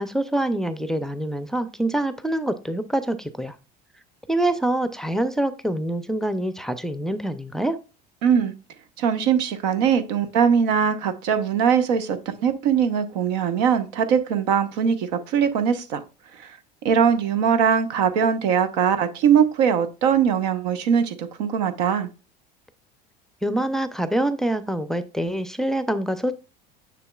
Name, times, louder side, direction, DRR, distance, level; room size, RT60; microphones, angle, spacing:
voice 1, 0.0-3.6 4.3-7.8 23.4-26.3, right 1 dB, ahead, 0.5 m, -25 dB
voice 2, 8.2-8.5 9.0-16.0 16.4-16.6 16.8-22.1, right 7 dB, 85° right, 1.0 m, -21 dB
6.9 x 6.5 x 2.3 m
supercardioid pair, 110°, 21 cm